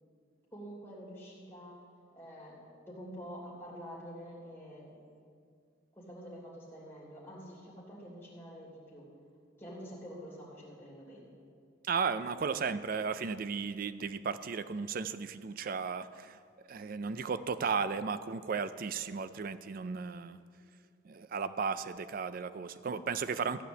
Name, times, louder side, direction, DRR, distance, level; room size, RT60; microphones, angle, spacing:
voice 1, 0.5-1.7 2.1-5.2 5.9-9.1 9.6-11.3, equal, 10° left, -6 dB, 3.1 m, -47 dB
voice 2, 11.8-16.4 16.7-20.4 21.0-23.6, right 5 dB, 45° right, 13 dB, 0.4 m, -35 dB
14.5 x 5.1 x 8.0 m, 2.2 s
head